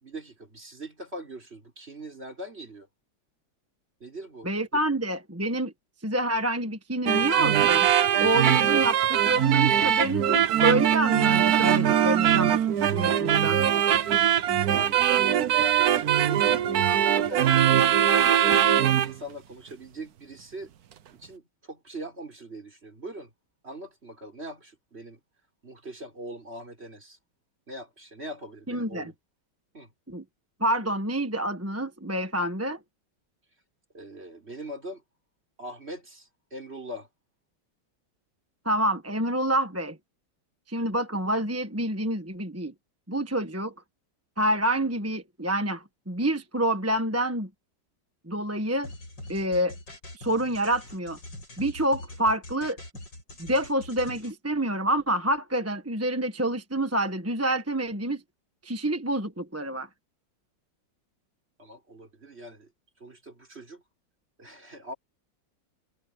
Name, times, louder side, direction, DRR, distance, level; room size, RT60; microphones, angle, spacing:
voice 1, 0.0-2.9 4.0-4.9 14.7-20.7 21.1-23.3 23.6-25.2 25.6-27.2 27.7-29.1 29.7-29.9 33.9-35.0 35.6-37.1 61.6-62.7 63.0-63.8 64.4-64.9, right 1 dB, 35° right, 5.2 m, -41 dB
voice 2, 4.4-5.7 6.0-7.9 8.2-13.6 28.7-29.1 30.1-30.2 30.6-32.8 38.6-40.0 40.7-42.7 43.1-43.7 44.4-47.5 48.3-48.9 49.3-49.8 50.1-51.2 51.6-52.8 53.4-58.2 58.6-59.9, right 1 dB, 10° right, 1.1 m, -27 dB
sound 1, 7.1-19.1, right 10 dB, 60° right, 1.3 m, -21 dB
sound 2, 48.8-54.3, left 1 dB, 85° left, 8.9 m, -43 dB
omnidirectional pair, 1.9 m